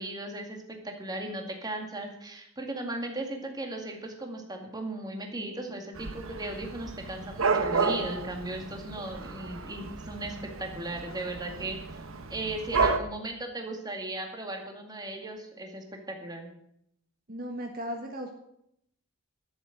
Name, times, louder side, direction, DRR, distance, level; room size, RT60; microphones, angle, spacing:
voice 1, 0.0-11.8 12.3-16.5, right 2 dB, 20° right, 2 dB, 2.1 m, -37 dB
Dog / Cat, 5.9-13.0, right 4 dB, 85° right, 1.2 m, -32 dB
voice 2, 17.3-18.3, equal, 45° right, 2 dB, 1.5 m, -36 dB
12.5 x 7.3 x 7.9 m, 0.74 s
head